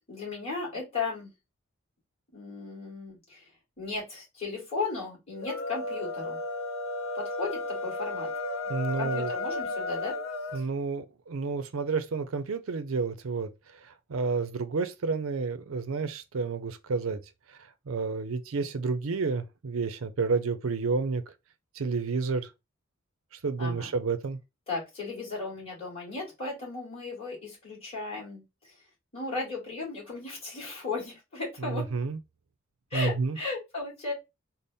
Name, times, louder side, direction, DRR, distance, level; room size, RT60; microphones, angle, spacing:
voice 1, 0.1-1.3 2.3-3.5 3.8-6.4 7.1-8.3 9.0-10.1 10.5-10.7 23.6-23.9 24.7-28.7 29.1-31.8 32.9-34.1, left 3 dB, 30° left, 2.2 m, -35 dB
sound 1, 5.3-10.6, left 2 dB, 65° left, 0.6 m, -33 dB
voice 2, 8.7-9.3 10.5-13.5 14.1-17.2 17.9-21.2 21.8-22.5 23.4-24.4 31.6-32.2 32.9-33.4, right 4 dB, 75° right, 0.5 m, -30 dB
4.0 x 2.0 x 3.4 m
head